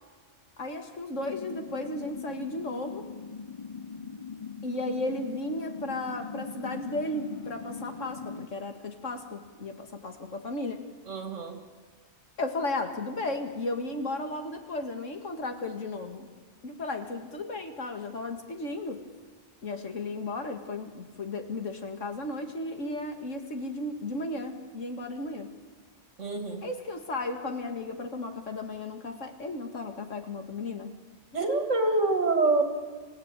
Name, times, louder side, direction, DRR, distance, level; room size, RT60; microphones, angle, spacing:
voice 1, 0.6-3.1 4.6-10.8 12.4-16.3 16.6-19.0 19.6-25.5 26.6-30.9, left 2 dB, 90° left, 5 dB, 2.4 m, -34 dB
sound 1, 1.1-8.5, left 5 dB, 35° left, 0.7 m, -40 dB
voice 2, 11.1-11.6 26.2-26.6 31.3-32.6, right 3 dB, 85° right, 4 dB, 2.9 m, -26 dB
27.5 x 16.5 x 9.1 m, 1.5 s
omnidirectional pair, 1.3 m